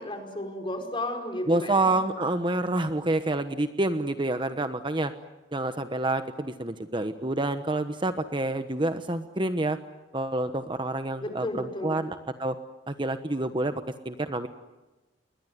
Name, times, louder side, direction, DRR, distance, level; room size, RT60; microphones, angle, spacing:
voice 1, 0.0-2.1 11.2-12.1, left 1 dB, 30° left, 6 dB, 4.8 m, -34 dB
voice 2, 1.5-5.1 5.5-9.8 10.1-12.6 12.9-14.5, right 2 dB, 25° right, 9 dB, 1.1 m, -28 dB
29.0 x 22.0 x 9.5 m, 1.1 s
head